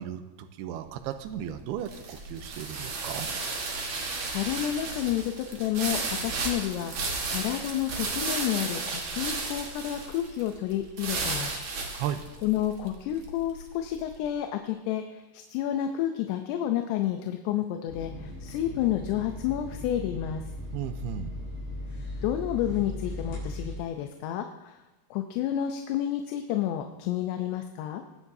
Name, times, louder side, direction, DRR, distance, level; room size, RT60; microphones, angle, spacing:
voice 1, 0.0-3.3 11.9-12.2 20.7-21.3, right 10 dB, 85° right, 9 dB, 2.5 m, -35 dB
sound 1, 0.9-14.1, right 3 dB, 60° right, 1.4 m, -34 dB
voice 2, 4.3-6.9 7.3-11.5 12.4-20.4 22.2-24.8 25.1-28.0, left 11 dB, 80° left, 5 dB, 2.7 m, -30 dB
sound 2, 17.9-23.8, left 1 dB, 65° left, 5.6 m, -38 dB
21.5 x 9.9 x 2.7 m, 1.1 s
omnidirectional pair, 4.9 m